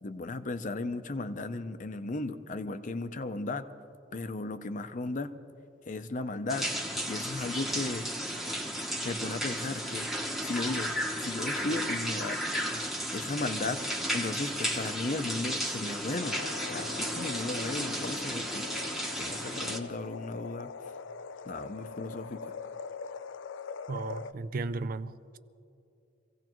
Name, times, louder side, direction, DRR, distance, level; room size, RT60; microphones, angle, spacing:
voice 1, 0.0-3.7 4.1-5.4 5.9-6.7 7.1-8.1 9.0-10.1 10.4-12.4 13.1-13.8 14.1-18.7 19.2-20.9 21.4-22.5, left 2 dB, 40° left, 0.6 m, -35 dB
sound 1, 6.5-19.8, equal, ahead, 0.9 m, -34 dB
sound 2, 16.2-24.3, left 5 dB, 85° left, 0.4 m, -42 dB
voice 2, 23.9-25.4, right 3 dB, 50° right, 0.4 m, -35 dB
25.0 x 16.0 x 3.0 m
head